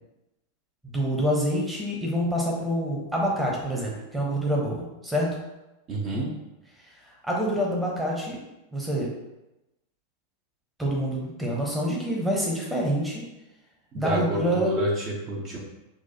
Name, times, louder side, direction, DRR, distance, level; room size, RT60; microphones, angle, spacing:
voice 1, 0.8-5.4 7.1-8.4 8.7-9.1 10.8-13.3 13.9-14.7, equal, 5° right, -3 dB, 1.0 m, -27 dB
voice 2, 5.9-6.3 13.9-15.6, right 1 dB, 35° right, -3 dB, 0.8 m, -28 dB
6.2 x 2.4 x 2.8 m, 0.97 s
figure-of-eight pair, 90°, 0 cm